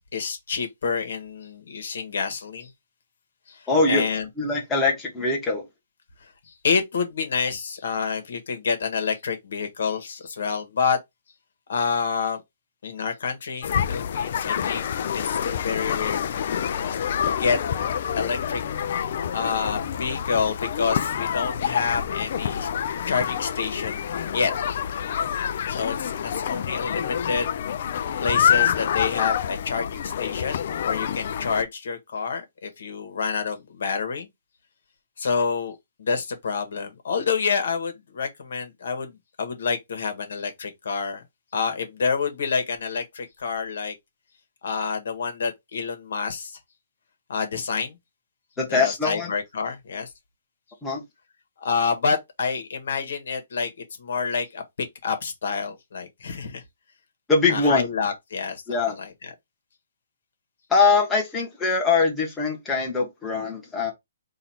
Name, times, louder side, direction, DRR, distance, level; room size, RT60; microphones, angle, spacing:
voice 1, 0.1-2.7 3.5-4.3 6.5-11.0 11.7-12.4 12.8-14.9 15.1-17.0 17.3-17.6 18.2-18.6 19.3-22.7 23.1-24.1 24.3-24.5 25.7-27.5 28.2-34.3 35.2-41.2 41.5-43.9 44.6-46.6 47.3-48.0 48.7-50.1 51.6-53.7 54.0-54.6 55.0-56.6 57.5-59.3, left 5 dB, 70° left, 1.5 m, -28 dB
voice 2, 3.7-4.0 4.4-5.6 48.6-49.3 50.8-51.0 57.3-57.8 58.7-58.9 60.7-63.9, left 4 dB, 10° left, 1.4 m, -22 dB
sound 1, 13.6-31.6, left 8 dB, 50° left, 0.5 m, -27 dB
4.0 x 2.6 x 4.2 m
hypercardioid pair, 155°, 0 cm